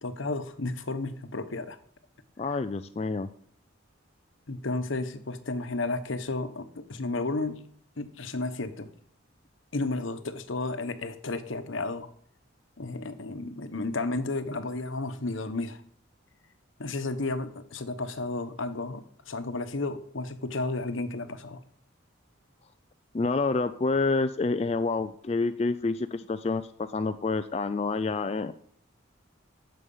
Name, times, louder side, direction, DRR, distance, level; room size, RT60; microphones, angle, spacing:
voice 1, 0.0-1.8 4.5-7.7 8.0-8.9 9.7-12.1 12.8-15.8 16.8-21.6, left 2 dB, 75° left, 11 dB, 1.0 m, -32 dB
voice 2, 2.4-3.3 23.1-28.5, left 3 dB, 30° left, 10 dB, 0.3 m, -28 dB
15.0 x 6.5 x 5.5 m, 0.62 s
head